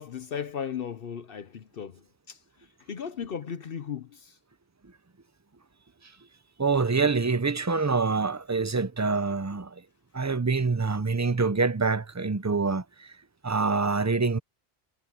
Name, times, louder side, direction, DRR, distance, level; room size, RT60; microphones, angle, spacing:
voice 1, 0.0-2.4 2.9-4.4, left 7 dB, 65° left, 1.0 m, -36 dB
voice 2, 6.6-9.7 10.1-12.8 13.4-14.4, right 4 dB, 20° right, 0.5 m, -25 dB
omnidirectional pair, 1.1 m